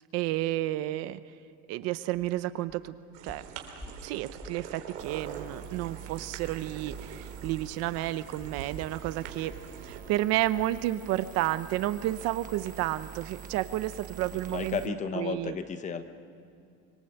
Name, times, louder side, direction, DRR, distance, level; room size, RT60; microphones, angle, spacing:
voice 1, 0.1-1.2 1.7-2.9 3.2-3.4 4.0-9.5 9.8-14.8 15.1-15.6, right 15 dB, 45° right, 14 dB, 0.7 m, -31 dB
sound 1, 2.1-2.3 2.7-2.9 3.3-4.7 5.0-5.3 5.7-5.8 6.9-10.9 11.2-11.4 11.8-11.9, left 1 dB, 5° left, 1.7 m, -50 dB
sound 2, 3.1-10.0, right 8 dB, 85° right, 3.8 m, -44 dB
sound 3, 5.0-14.9, right 8 dB, 25° right, 1.2 m, -46 dB
voice 2, 14.5-16.0, left 6 dB, 20° left, 9 dB, 1.0 m, -33 dB
25.5 x 25.5 x 7.9 m, 2.5 s
cardioid pair, 165°, 35 cm